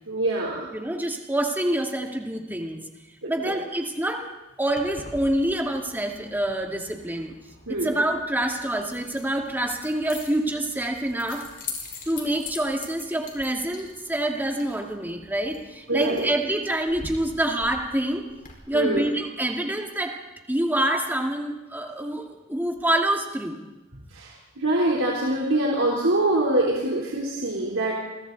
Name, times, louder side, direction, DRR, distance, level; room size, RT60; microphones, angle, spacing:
voice 1, 0.1-0.7 3.2-3.6 7.7-7.9 15.9-16.3 18.7-19.1 24.1-27.9, right 1 dB, 75° right, -3 dB, 3.7 m, -24 dB
voice 2, 0.7-2.8 3.3-4.2 4.6-7.4 7.7-11.4 12.1-18.2 18.7-20.2 20.5-23.6, right 1 dB, 10° right, 2 dB, 2.2 m, -26 dB
Keys jangling, 4.7-18.5, left 4 dB, 45° left, 4.5 m, -43 dB
29.0 x 23.0 x 4.1 m, 1.1 s
head